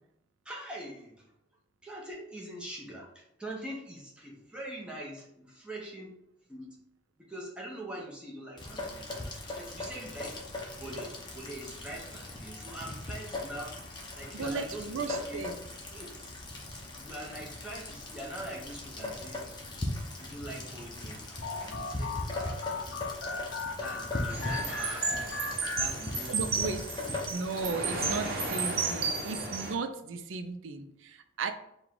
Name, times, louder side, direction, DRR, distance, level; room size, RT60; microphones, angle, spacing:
voice 1, 0.4-1.3 1.8-6.2 6.5-6.8 7.2-9.1 9.6-10.4 10.8-13.8 14.2-15.4 15.9-16.3 17.0-19.4 20.2-22.4 23.8-25.1 25.8-26.5 27.0-27.2, right 1 dB, 5° right, -3 dB, 0.8 m, -43 dB
Rain, 8.6-27.7, left 2 dB, 25° left, 0.7 m, -39 dB
voice 2, 14.3-15.5 26.3-26.8 27.3-31.5, right 4 dB, 90° right, 8 dB, 0.4 m, -35 dB
sound 1, 21.4-26.5, left 3 dB, 80° left, 0.5 m, -38 dB
sound 2, 24.3-29.7, right 4 dB, 50° right, 0.8 m, -33 dB
4.7 x 2.3 x 3.7 m, 0.78 s
head